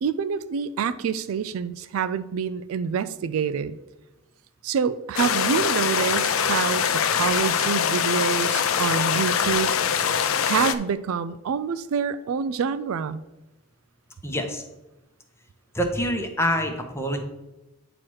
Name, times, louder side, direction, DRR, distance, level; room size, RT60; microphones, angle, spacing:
voice 1, 0.0-3.8 4.6-6.8 7.1-9.7 10.4-13.2, right 6 dB, 75° right, 13 dB, 0.3 m, -26 dB
sound 1, 5.2-10.8, left 7 dB, 70° left, 0.5 m, -23 dB
voice 2, 14.2-14.6 15.7-17.2, equal, 10° left, 4 dB, 0.9 m, -26 dB
8.9 x 3.0 x 6.2 m, 0.99 s
head